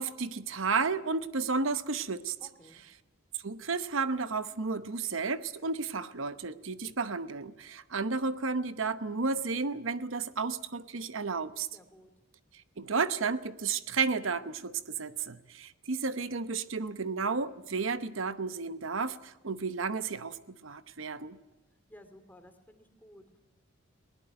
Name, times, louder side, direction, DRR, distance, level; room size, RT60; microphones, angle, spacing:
voice 1, 0.0-2.4 3.4-11.7 12.8-21.4, right 4 dB, 75° right, 13 dB, 0.9 m, -32 dB
voice 2, 2.4-2.8 11.7-12.1 21.9-23.4, left 1 dB, 10° left, 8 dB, 2.6 m, -55 dB
20.5 x 19.0 x 9.2 m, 1.0 s
head